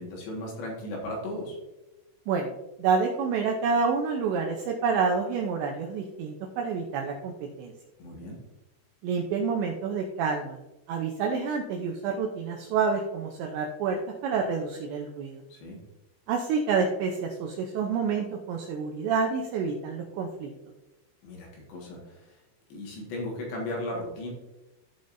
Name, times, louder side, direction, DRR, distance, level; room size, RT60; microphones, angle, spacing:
voice 1, 0.0-1.6 8.0-8.4 15.5-15.8 21.2-22.3 22.7-24.3, left 1 dB, 65° left, -2 dB, 3.6 m, -36 dB
voice 2, 2.8-7.3 7.6-7.7 9.0-10.6 10.9-15.4 16.3-20.5, right 5 dB, 80° right, 2 dB, 2.6 m, -28 dB
15.0 x 5.1 x 2.6 m, 1.0 s
omnidirectional pair, 6.0 m